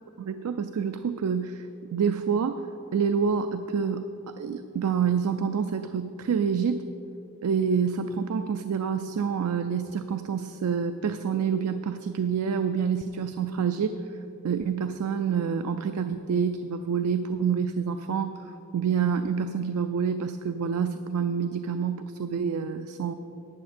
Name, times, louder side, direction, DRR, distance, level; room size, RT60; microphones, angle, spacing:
voice 1, 0.2-4.1 4.4-6.9 7.4-14.0 14.4-23.1, right 6 dB, 85° right, 9 dB, 0.4 m, -27 dB
11.5 x 8.5 x 4.3 m, 2.9 s
head